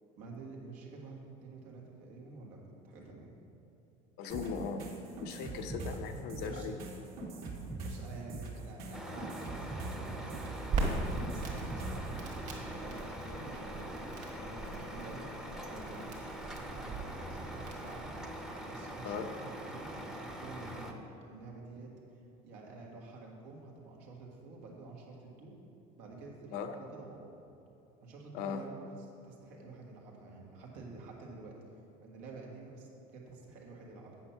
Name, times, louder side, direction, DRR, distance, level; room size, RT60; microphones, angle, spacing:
voice 1, 0.2-3.3 6.4-6.8 7.8-10.9 11.2-25.5 26.0-27.3 28.0-31.6 32.0-34.2, right 3 dB, 85° right, -1 dB, 1.7 m, -49 dB
voice 2, 4.2-4.9 5.2-6.8 19.0-19.3 26.5-26.8 28.3-28.6, left 6 dB, 70° left, 6 dB, 0.7 m, -38 dB
sound 1, 4.3-12.1, right 2 dB, 65° right, 1.8 m, -42 dB
Truck, 8.9-20.9, equal, 5° right, 0.7 m, -43 dB
Crackle, 10.7-18.0, right 3 dB, 45° right, 1.6 m, -39 dB
8.4 x 5.9 x 5.8 m, 2.7 s
cardioid pair, 130°, 17 cm